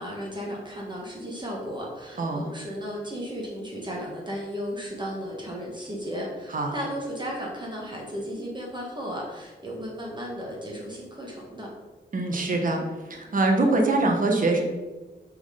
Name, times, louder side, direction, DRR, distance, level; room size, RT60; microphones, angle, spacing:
voice 1, 0.0-11.7, equal, 25° right, -2 dB, 1.3 m, -35 dB
voice 2, 12.1-12.8 13.1-14.6, right 2 dB, 50° right, 2 dB, 1.0 m, -23 dB
6.1 x 3.9 x 4.9 m, 1.2 s
wide cardioid pair, 125°, 18 cm